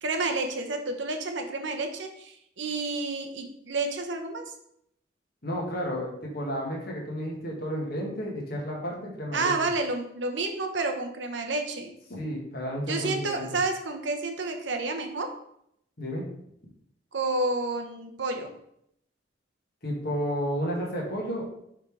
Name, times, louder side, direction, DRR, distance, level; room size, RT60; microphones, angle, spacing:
voice 1, 0.0-4.5 9.3-11.9 12.9-15.4 17.1-18.5, right 3 dB, 70° right, 5 dB, 0.8 m, -30 dB
voice 2, 5.4-9.5 12.1-13.6 16.0-16.3 19.8-21.4, equal, 55° left, -2 dB, 1.8 m, -32 dB
5.8 x 3.5 x 4.9 m, 0.73 s
head